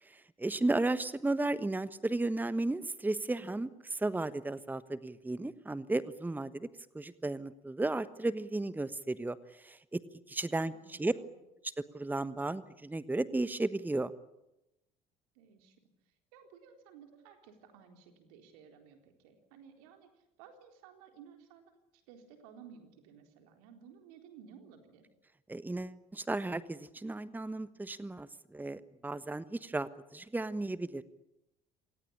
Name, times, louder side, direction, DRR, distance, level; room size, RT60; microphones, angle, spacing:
voice 1, 0.1-6.7 6.9-10.0 10.3-11.1 11.9-14.1 25.5-31.0, right 2 dB, 10° right, 15 dB, 1.2 m, -34 dB
voice 2, 10.7-11.4 15.4-15.8 16.3-20.1 20.4-21.7 22.1-25.1, right 7 dB, 65° right, 6 dB, 4.0 m, -56 dB
27.5 x 18.0 x 10.0 m, 0.90 s
figure-of-eight pair, 60°, 20 cm